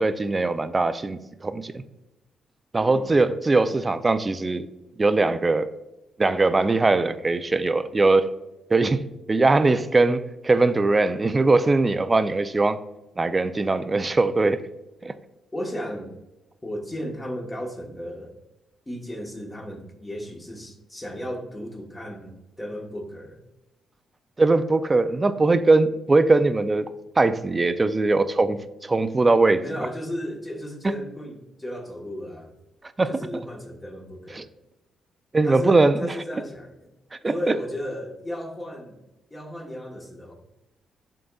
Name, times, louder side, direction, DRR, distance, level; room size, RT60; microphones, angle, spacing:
voice 1, 0.0-1.8 2.7-4.7 5.0-5.7 6.2-8.3 8.7-12.8 13.2-14.6 15.0-15.1 24.4-26.9 27.2-29.6 33.0-33.4 34.3-34.4 35.3-36.0 37.2-37.3, right 3 dB, 25° right, 0.4 m, -21 dB
voice 2, 2.8-3.2 15.5-16.1 16.6-18.3 18.9-23.4 29.6-32.5 33.1-34.5 35.4-36.9 37.2-39.0 39.3-40.3, equal, 15° left, 1.3 m, -34 dB
11.0 x 3.9 x 2.3 m
cardioid pair, 100°, 0 cm